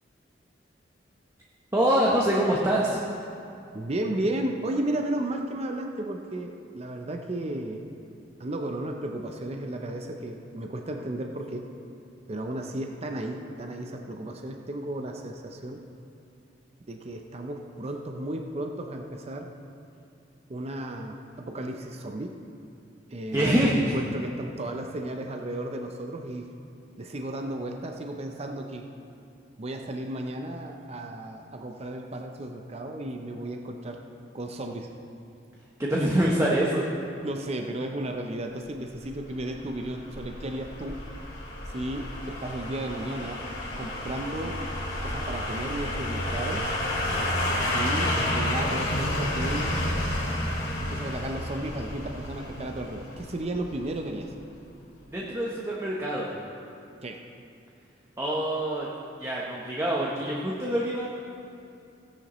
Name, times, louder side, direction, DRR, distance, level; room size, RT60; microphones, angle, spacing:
voice 1, 1.7-3.0 23.3-23.9 35.8-36.9 55.0-56.3 58.2-58.9 59.2-61.1, right 1 dB, 15° right, -4 dB, 1.0 m, -25 dB
voice 2, 3.7-7.8 8.4-11.7 12.3-15.8 16.9-19.5 20.5-22.3 23.1-26.5 27.0-28.9 29.6-34.0 34.3-34.9 36.0-36.1 37.2-41.0 41.7-43.4 43.8-44.6 45.0-46.7 47.7-49.7 50.8-54.3 57.0-57.2, right 1 dB, 35° right, 3 dB, 0.6 m, -34 dB
sound 1, 39.1-54.0 54.3-54.4, left 1 dB, 80° left, 2.6 m, -30 dB
16.5 x 10.0 x 3.1 m, 2.7 s
head